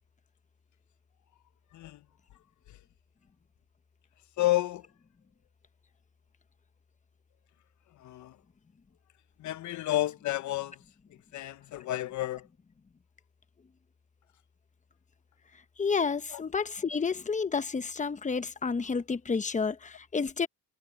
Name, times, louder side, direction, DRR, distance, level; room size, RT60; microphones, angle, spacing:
voice 1, 4.4-4.9 8.0-8.4 9.4-10.8 11.3-12.5 16.3-16.4, left 16 dB, 70° left, 0.7 m, -31 dB
voice 2, 15.8-20.5, left 5 dB, 25° left, 1.0 m, -30 dB
cardioid pair, 90°, 30 cm